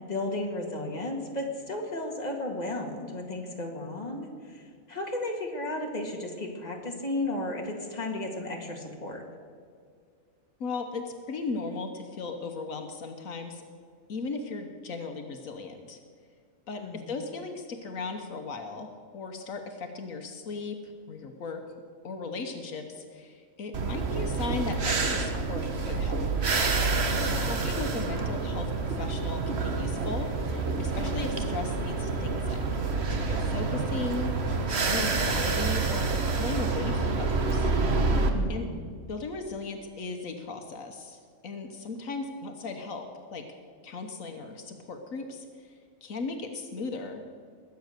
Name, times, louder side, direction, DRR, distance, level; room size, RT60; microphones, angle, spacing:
voice 1, 0.0-9.2 16.8-17.1 27.3-27.6 38.3-38.8, left 2 dB, 30° left, 1 dB, 2.1 m, -34 dB
voice 2, 10.6-13.6 14.1-16.0 16.7-20.8 21.1-21.7 22.0-26.2 27.2-32.6 33.1-34.3 34.7-37.7 38.5-38.7 39.1-43.4 43.8-45.7 46.0-47.2, left 4 dB, 80° left, 5 dB, 1.5 m, -37 dB
sound 1, 23.7-38.3, right 3 dB, 50° right, 1.4 m, -28 dB
21.0 x 8.2 x 6.6 m, 2.1 s
omnidirectional pair, 1.4 m